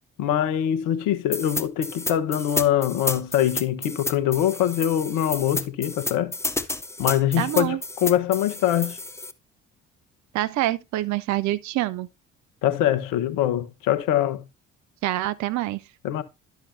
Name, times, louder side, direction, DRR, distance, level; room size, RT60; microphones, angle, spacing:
voice 1, 0.2-6.3 7.0-9.0 12.6-14.4 16.0-16.2, left 11 dB, 60° left, 1.1 m, -23 dB
sound 1, 1.3-9.3, left 2 dB, 5° left, 0.8 m, -31 dB
voice 2, 7.4-7.8 10.3-12.1 15.0-15.8, right 15 dB, 50° right, 0.7 m, -26 dB
11.5 x 7.2 x 2.6 m
figure-of-eight pair, 50°, 36 cm